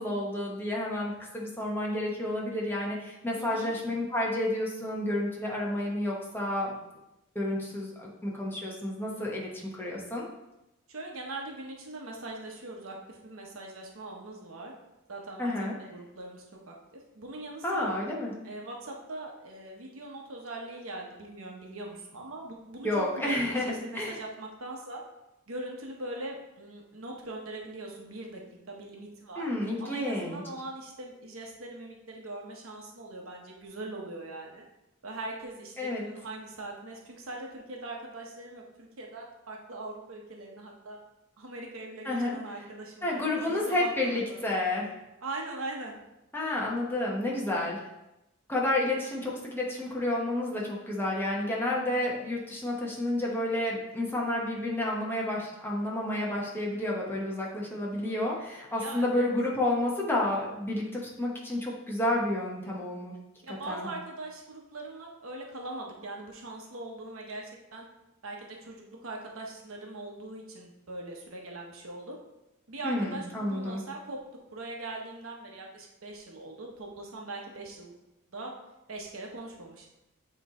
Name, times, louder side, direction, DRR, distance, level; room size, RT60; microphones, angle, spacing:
voice 1, 0.0-6.7 7.3-10.2 15.4-15.7 17.6-18.3 22.8-24.2 29.4-30.4 35.8-36.0 42.0-42.4 43.0-44.9 46.3-47.8 48.5-63.1 63.5-63.9 72.8-73.8, left 1 dB, 10° left, -4 dB, 1.0 m, -30 dB
voice 2, 3.4-3.7 10.9-14.7 15.1-15.5 15.8-17.9 18.4-22.9 23.2-25.0 25.5-28.4 28.7-29.5 29.8-34.6 35.0-41.0 41.4-44.4 45.2-45.9 58.7-59.1 63.4-67.9 68.2-72.2 72.7-74.2 74.5-77.9 78.3-78.5 78.9-79.9, right 2 dB, 75° right, 0 dB, 1.1 m, -41 dB
8.1 x 3.2 x 3.7 m, 0.93 s
head